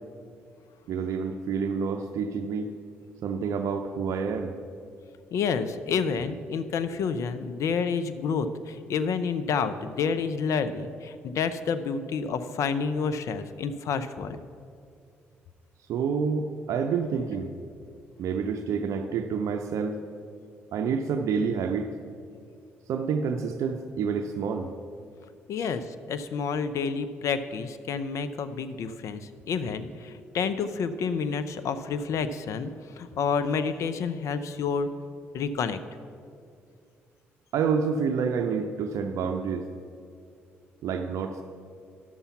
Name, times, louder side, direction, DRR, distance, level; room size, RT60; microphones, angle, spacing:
voice 1, 0.9-2.7 3.2-4.5 15.9-17.5 18.2-20.0 20.7-21.9 22.9-24.7 25.6-25.7 37.5-39.7 40.8-41.4, right 6 dB, 65° right, 6 dB, 0.5 m, -28 dB
voice 2, 5.3-14.4 25.5-34.9 35.3-35.8, left 5 dB, 65° left, 11 dB, 0.6 m, -29 dB
11.0 x 7.0 x 5.7 m, 2.3 s
hypercardioid pair, 50°, 6 cm